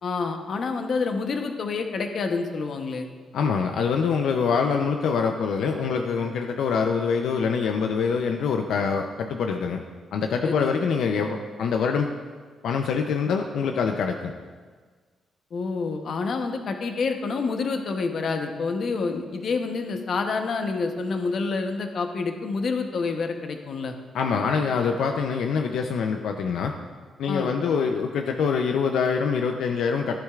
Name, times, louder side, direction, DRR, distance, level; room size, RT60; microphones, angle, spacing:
voice 1, 0.0-3.1 10.4-10.7 15.5-24.0 27.2-27.5, left 4 dB, 50° left, 5 dB, 0.9 m, -28 dB
voice 2, 3.3-9.8 10.1-12.1 12.6-14.3 24.1-26.7 27.2-30.2, left 5 dB, 80° left, 4 dB, 0.6 m, -25 dB
13.5 x 9.7 x 2.4 m, 1.5 s
cardioid pair, 140°, 0 cm